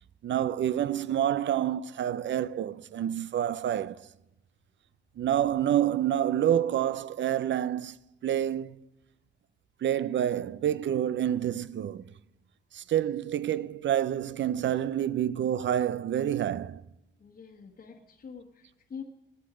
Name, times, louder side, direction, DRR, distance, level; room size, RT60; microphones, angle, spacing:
voice 1, 0.2-4.1 5.2-8.0 8.2-8.8 9.8-12.1 12.7-16.8, right 10 dB, 70° right, 0.5 m, -28 dB
voice 2, 17.2-19.0, left 6 dB, 50° left, 1.3 m, -45 dB
17.5 x 10.5 x 5.0 m
wide cardioid pair, 125°, 20 cm